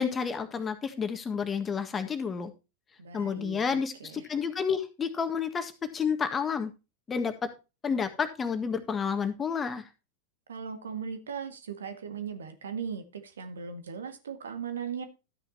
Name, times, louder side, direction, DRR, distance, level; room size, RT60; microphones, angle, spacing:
voice 1, 0.0-2.5 3.1-6.7 7.1-7.5 7.8-9.8, left 6 dB, 20° left, 8 dB, 1.6 m, -30 dB
voice 2, 3.0-4.3 10.5-15.0, right 6 dB, 65° right, 9 dB, 1.7 m, -38 dB
13.0 x 9.2 x 2.8 m, 0.28 s
figure-of-eight pair, 90°, 0 cm